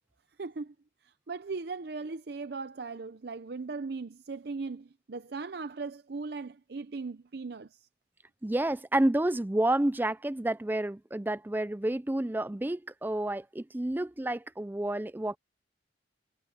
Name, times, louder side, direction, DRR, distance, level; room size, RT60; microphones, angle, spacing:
voice 1, 0.4-0.7 1.0-7.9, right 4 dB, 60° right, 0.6 m, -38 dB
voice 2, 8.4-15.4, right 1 dB, 10° right, 0.4 m, -29 dB
head